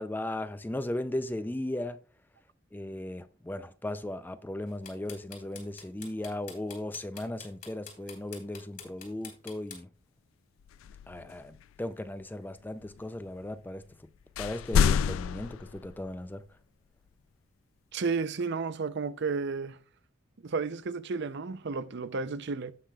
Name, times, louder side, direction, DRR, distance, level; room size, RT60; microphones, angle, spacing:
voice 1, 0.0-2.0 2.7-9.9 11.1-13.8 14.4-16.4, left 1 dB, 10° left, 0.4 m, -36 dB
sound 1, 4.7-9.8, left 6 dB, 45° left, 3.2 m, -45 dB
sound 2, 10.6-11.8 12.7-13.5 13.8-13.9 14.2-16.2, left 7 dB, 80° left, 0.3 m, -29 dB
voice 2, 17.9-19.8 20.4-22.7, right 4 dB, 60° right, 0.6 m, -32 dB
16.5 x 5.8 x 2.3 m
head